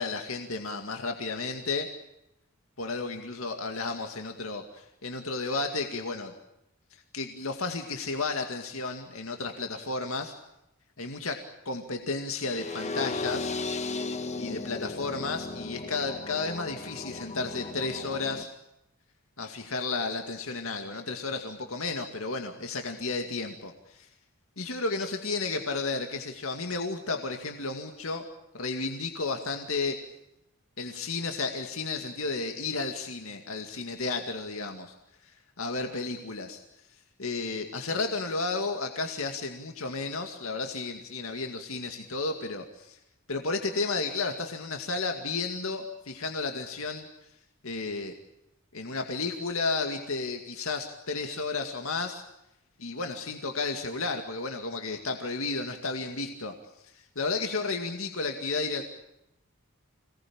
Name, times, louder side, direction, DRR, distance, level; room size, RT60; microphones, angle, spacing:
voice 1, 0.0-1.9 2.8-6.3 6.9-10.3 11.0-13.5 14.4-18.5 19.4-24.1 24.6-28.3 28.5-30.0 30.8-34.9 35.2-36.6 37.2-43.0 43.3-47.1 47.6-48.1 48.7-52.2 52.8-56.5 56.9-58.8, left 3 dB, 75° left, 4 dB, 2.3 m, -33 dB
sound 1, 12.4-18.4, left 3 dB, 30° left, 1.3 m, -36 dB
27.0 x 19.0 x 8.8 m, 0.87 s
head